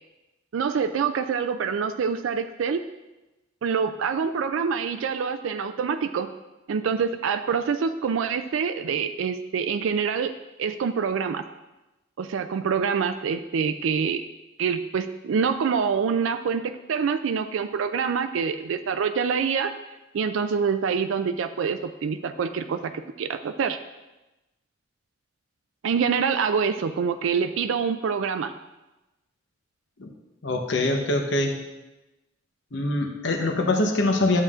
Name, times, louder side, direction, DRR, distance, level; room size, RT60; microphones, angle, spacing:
voice 1, 0.5-2.8 3.6-6.3 6.7-10.3 10.6-11.4 12.2-14.2 14.6-19.7 20.1-22.9 23.2-23.8 25.8-28.5, right 6 dB, 80° right, 8 dB, 0.4 m, -26 dB
voice 2, 30.4-31.6 32.7-34.4, left 2 dB, 65° left, 2 dB, 0.9 m, -24 dB
11.5 x 7.4 x 2.5 m, 1.0 s
head